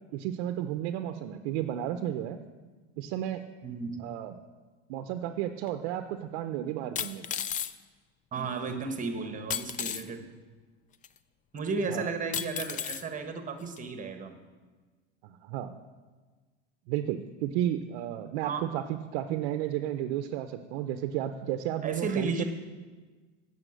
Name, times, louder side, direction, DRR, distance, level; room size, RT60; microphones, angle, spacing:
voice 1, 0.1-2.4 3.0-3.4 4.0-4.3 4.9-7.3 11.9-12.1 15.4-15.7 16.9-22.4, right 11 dB, 70° right, 8 dB, 0.6 m, -33 dB
voice 2, 3.6-4.0 8.3-10.3 11.5-14.4 18.4-18.7 19.3-19.4 21.8-22.4, right 4 dB, 25° right, 6 dB, 1.2 m, -34 dB
sound 1, 5.7-5.8 7.0-7.7 9.5-10.0 11.0-11.1 12.3-13.0 13.8-13.9, left 9 dB, 25° left, 0.3 m, -33 dB
9.0 x 5.8 x 7.7 m, 1.4 s
supercardioid pair, 115°, 33 cm